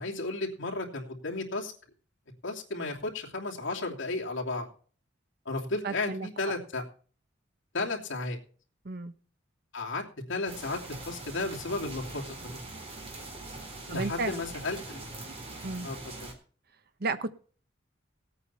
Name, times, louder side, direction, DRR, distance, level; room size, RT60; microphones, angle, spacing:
voice 1, 0.0-1.7 2.4-4.7 5.4-6.8 7.7-8.4 9.7-10.8 11.0-12.6 13.9-15.0 15.8-16.3, left 2 dB, 70° left, -1 dB, 3.0 m, -34 dB
voice 2, 5.8-6.3 8.8-9.1 13.9-14.3 15.6-15.9 17.0-17.3, right 3 dB, 55° right, 11 dB, 1.1 m, -32 dB
sound 1, 10.5-16.3, right 2 dB, 30° right, 3.5 m, -42 dB
18.0 x 8.8 x 4.3 m, 0.43 s
head